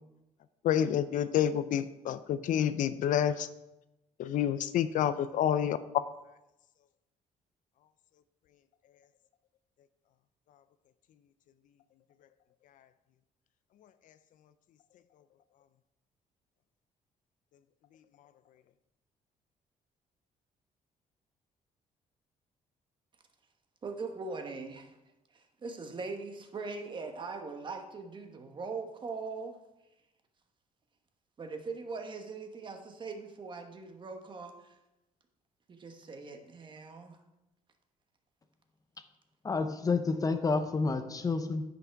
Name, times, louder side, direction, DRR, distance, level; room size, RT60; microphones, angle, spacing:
voice 1, 0.6-3.5 4.2-5.8, left 10 dB, 65° left, 13 dB, 0.5 m, -28 dB
voice 2, 23.8-24.9 25.3-29.6 31.4-34.7 35.7-37.2, right 4 dB, 35° right, 5 dB, 1.1 m, -41 dB
voice 3, 39.4-41.6, left 4 dB, 25° left, 9 dB, 0.6 m, -29 dB
9.6 x 5.8 x 4.6 m, 0.94 s
cardioid pair, 130°, 14 cm